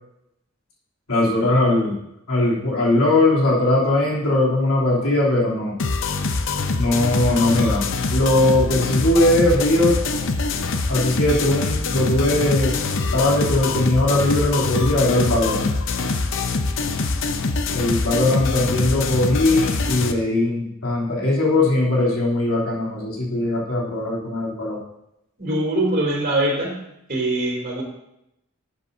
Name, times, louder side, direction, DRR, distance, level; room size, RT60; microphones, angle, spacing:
voice 1, 1.1-2.0 2.3-5.8 6.8-7.8 8.1-10.0 10.9-12.8 13.1-15.7 17.7-24.8, left 2 dB, 90° left, -4 dB, 3.0 m, -20 dB
sound 1, 5.8-20.1, left 3 dB, 60° left, 0.7 m, -24 dB
voice 2, 25.4-26.8 27.1-27.8, right 1 dB, 40° right, -3 dB, 2.9 m, -22 dB
12.0 x 7.9 x 2.7 m, 0.82 s
head